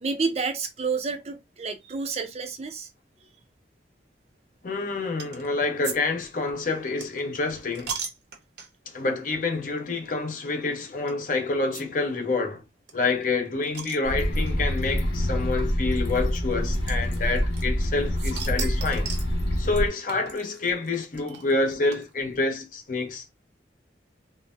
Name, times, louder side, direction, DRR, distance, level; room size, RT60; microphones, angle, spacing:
voice 1, 0.0-2.9, right 4 dB, 35° right, 0.5 m, -29 dB
voice 2, 4.6-7.9 8.9-12.6 12.9-19.1 19.6-23.3, left 3 dB, 50° left, 0.7 m, -27 dB
sound 1, 5.2-5.5 5.8-8.9 9.5-9.7 10.0-10.1 11.1-11.2 11.7-11.8 12.1-12.2 12.4-12.5 12.9-14.5 15.4-15.5 16.9-17.9 18.2-19.3 20.1-22.4, right 6 dB, 70° right, 0.7 m, -37 dB
sound 2, 14.0-19.9, equal, 80° left, 1.0 m, -26 dB
3.8 x 2.0 x 2.5 m
head